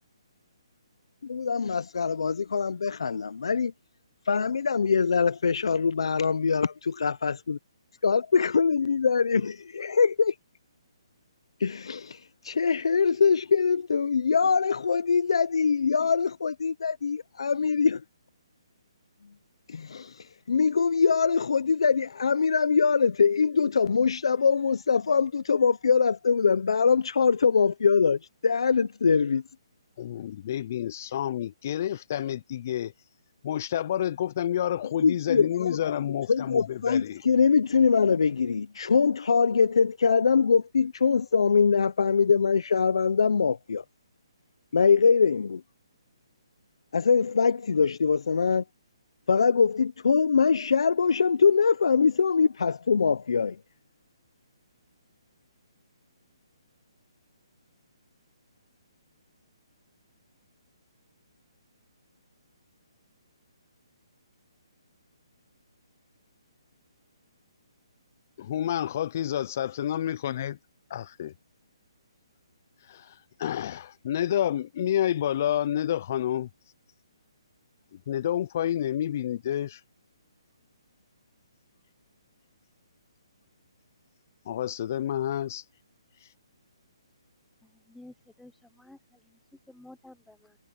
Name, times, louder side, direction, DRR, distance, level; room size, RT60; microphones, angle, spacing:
voice 1, 1.2-3.7 4.3-7.6 8.0-10.3 11.6-18.0 19.7-29.4 35.0-36.0 36.3-43.8 44.7-45.6 46.9-48.6 49.3-53.6, left 5 dB, 65° left, 0.7 m, -23 dB
voice 2, 30.0-32.9 33.4-37.2 68.4-70.6 70.9-71.3 72.9-73.1 73.4-76.5 78.1-79.8 84.5-85.6, left 11 dB, 30° left, 0.3 m, -29 dB
voice 3, 87.6-89.2 89.7-90.6, left 2 dB, ahead, 0.7 m, -52 dB
hypercardioid pair, 175°, 3 cm